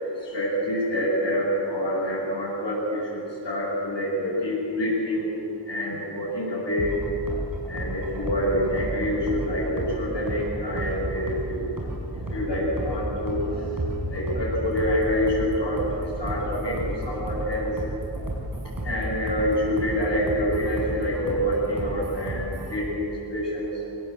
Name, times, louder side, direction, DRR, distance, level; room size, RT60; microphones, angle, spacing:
voice 1, 0.3-5.3 5.7-6.9 7.7-11.7 12.3-13.4 14.1-15.8 16.2-17.7 18.8-23.7, equal, 70° left, -10 dB, 7.8 m, -26 dB
sound 1, 6.8-22.8, right 1 dB, 50° right, 5.9 m, -32 dB
25.0 x 18.0 x 8.2 m, 2.9 s
wide cardioid pair, 70°, 44 cm